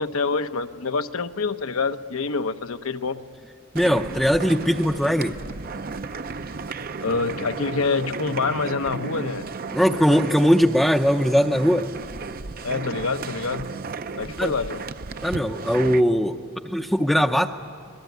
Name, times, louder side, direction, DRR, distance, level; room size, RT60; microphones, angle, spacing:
voice 1, 0.0-3.2 7.0-9.4 12.6-13.7 14.1-14.8, left 4 dB, 75° left, 9 dB, 1.0 m, -26 dB
voice 2, 3.7-5.4 9.7-11.9 14.4-14.5 15.2-16.4 16.6-17.5, equal, ahead, 3 dB, 0.6 m, -20 dB
sound 1, 3.8-16.0, right 4 dB, 40° right, 0.6 m, -34 dB
27.5 x 22.0 x 9.3 m, 2.3 s
head